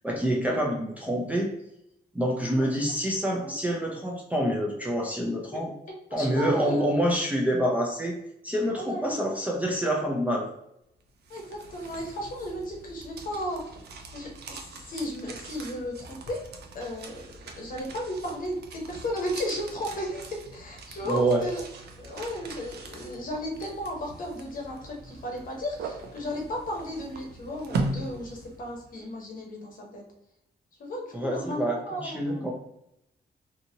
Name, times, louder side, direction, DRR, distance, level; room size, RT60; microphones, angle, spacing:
voice 1, 0.0-1.5 2.1-5.7 6.1-8.2 8.4-10.5 21.0-21.4 31.1-32.5, right 1 dB, 10° right, -2 dB, 0.4 m, -27 dB
voice 2, 6.1-7.0 8.8-9.2 11.3-13.6 14.1-16.4 16.7-17.2 17.6-21.6 22.0-30.0 30.8-32.5, equal, 50° left, 0 dB, 0.8 m, -34 dB
sound 1, 11.0-29.0, right 3 dB, 70° right, 0.4 m, -40 dB
2.7 x 2.6 x 2.7 m, 0.81 s
wide cardioid pair, 175°, 18 cm